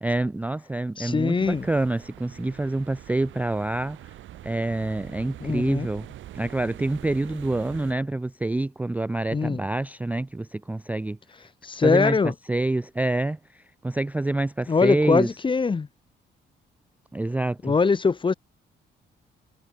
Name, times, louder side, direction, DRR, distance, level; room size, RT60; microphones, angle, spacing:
voice 1, 0.0-4.1 4.4-6.1 6.3-11.2 11.8-15.3 17.1-17.8, right 2 dB, 10° right, 0.4 m, -27 dB
voice 2, 1.0-1.7 5.4-5.9 9.3-9.6 11.6-12.3 14.7-15.9 17.6-18.3, left 4 dB, 25° left, 0.8 m, -22 dB
sound 1, 1.4-7.9, right 13 dB, 75° right, 1.1 m, -44 dB
cardioid pair, 90°, 20 cm